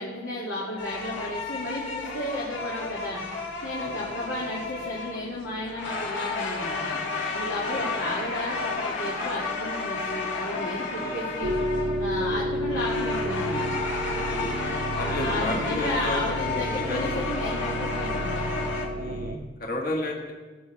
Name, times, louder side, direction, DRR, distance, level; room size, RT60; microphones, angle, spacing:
voice 1, 0.0-3.2 3.6-7.0 7.3-11.5 12.0-13.7 15.0-18.5, left 1 dB, 85° left, -5 dB, 2.1 m, -33 dB
sound 1, 0.8-18.9, left 3 dB, 65° left, 2.0 m, -32 dB
sound 2, 11.4-19.4, equal, 55° right, 0.6 m, -31 dB
voice 2, 14.3-17.3 18.9-20.3, left 1 dB, 50° left, 0 dB, 1.4 m, -33 dB
19.0 x 8.4 x 3.2 m, 1.4 s
head